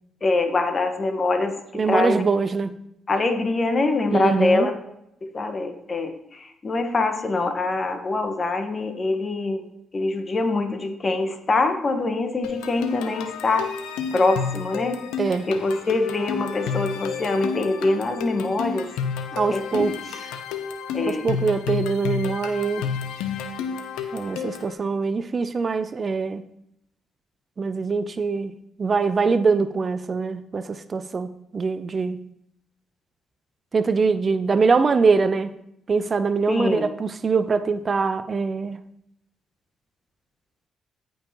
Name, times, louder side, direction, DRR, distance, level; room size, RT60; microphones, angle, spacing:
voice 1, 0.2-2.2 3.1-4.7 5.2-9.6 9.9-13.7 14.1-15.0 15.5-18.9 19.5-19.9 20.9-21.3 36.5-36.9, left 3 dB, 40° left, 6 dB, 1.3 m, -24 dB
voice 2, 1.7-2.7 4.1-4.7 15.2-15.5 19.3-20.3 21.1-22.9 24.1-26.4 27.6-32.2 33.7-35.5 35.9-38.8, right 4 dB, 40° right, 12 dB, 0.5 m, -23 dB
sound 1, 12.4-24.7, left 6 dB, 90° left, 0.7 m, -31 dB
14.5 x 5.4 x 3.0 m, 0.79 s
supercardioid pair, 60°, 0 cm